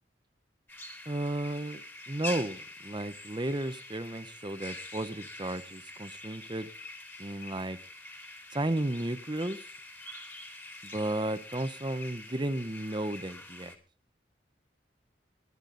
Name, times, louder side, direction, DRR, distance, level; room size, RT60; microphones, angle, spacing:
sound 1, 0.7-13.8, left 2 dB, 10° left, 2.4 m, -45 dB
voice 1, 1.1-1.8 2.1-6.7 7.2-7.8 8.5-9.6 10.8-13.7, right 1 dB, 25° right, 0.9 m, -33 dB
20.5 x 11.0 x 3.9 m
head